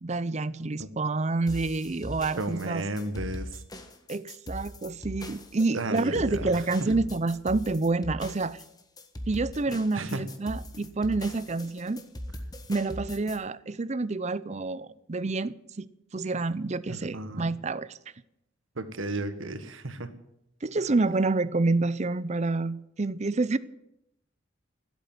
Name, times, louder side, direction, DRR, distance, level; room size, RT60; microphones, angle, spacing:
voice 1, 0.0-2.8 4.1-8.6 9.3-12.0 12.7-15.9 16.1-17.9 20.6-23.6, right 3 dB, 35° right, 0.6 m, -28 dB
sound 1, 1.5-13.4, left 1 dB, 20° left, 1.4 m, -40 dB
voice 2, 2.4-3.6 5.7-6.9 9.9-10.2 16.9-17.5 18.7-20.1, right 2 dB, 85° right, 1.6 m, -34 dB
15.5 x 8.2 x 9.4 m
head